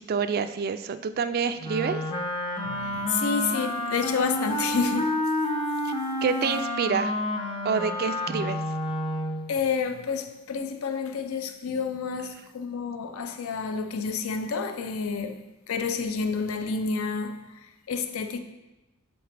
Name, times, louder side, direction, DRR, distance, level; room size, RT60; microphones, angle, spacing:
voice 1, 0.0-2.0 6.2-7.1 7.6-8.6, right 6 dB, 45° right, 0.3 m, -27 dB
Wind instrument woodwind instrument, 1.6-9.5, left 1 dB, 25° left, 0.6 m, -29 dB
voice 2, 2.6-5.2 9.5-18.4, left 5 dB, 70° left, 0.5 m, -29 dB
7.8 x 4.0 x 3.4 m
head